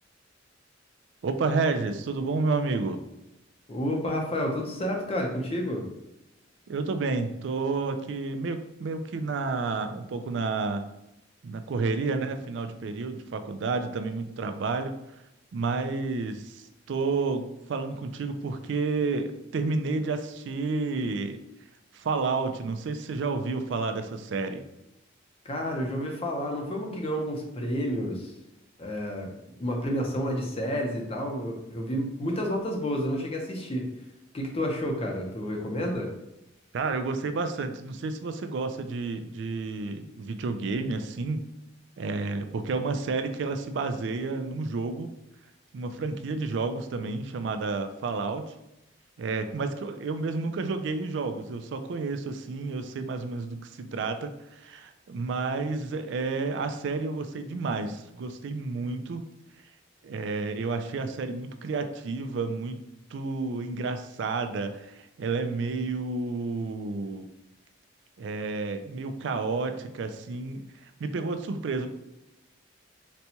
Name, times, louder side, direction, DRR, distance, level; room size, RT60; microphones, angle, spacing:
voice 1, 1.2-3.0 6.7-10.8 11.4-14.9 15.5-21.4 21.9-24.6 36.7-41.4 42.0-45.1 45.7-48.5 49.2-59.3 60.0-62.8 63.1-67.3 68.2-70.6 71.0-71.9, right 3 dB, 65° right, 8 dB, 0.3 m, -30 dB
voice 2, 3.7-5.8 25.4-28.3 28.8-29.3 29.6-33.8 34.3-36.1, equal, 30° left, 1 dB, 0.6 m, -30 dB
4.1 x 2.2 x 2.8 m, 0.90 s
head